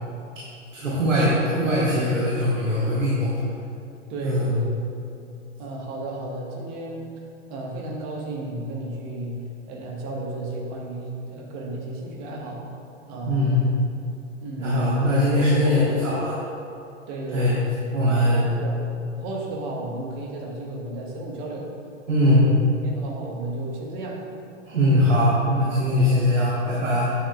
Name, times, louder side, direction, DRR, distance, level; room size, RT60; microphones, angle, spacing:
voice 1, 0.7-3.3 4.2-4.5 13.2-13.7 14.6-16.4 17.3-17.6 17.9-18.4 22.1-22.5 24.6-27.1, left 1 dB, 75° right, -6 dB, 1.4 m, -21 dB
voice 2, 4.1-4.7 5.6-7.1 7.5-9.4 9.7-12.6 13.1-13.6 14.4-15.0 15.3-16.0 17.1-17.6 18.0-21.7 22.2-22.5 22.8-24.2 24.8-25.0 26.1-26.3, right 2 dB, 40° right, -2 dB, 1.4 m, -33 dB
9.7 x 6.4 x 2.3 m, 2.5 s
figure-of-eight pair, 100°, 38 cm